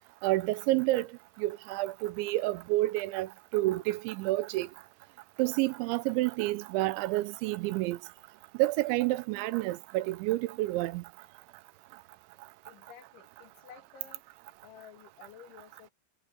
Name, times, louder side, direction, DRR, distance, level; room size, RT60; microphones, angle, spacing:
voice 1, 0.2-1.1 1.4-4.7 5.4-8.0 8.6-11.0, right 18 dB, 85° right, 3.1 m, -29 dB
voice 2, 12.7-14.2 14.6-15.9, left 8 dB, 85° left, 5.1 m, -53 dB
omnidirectional pair, 5.2 m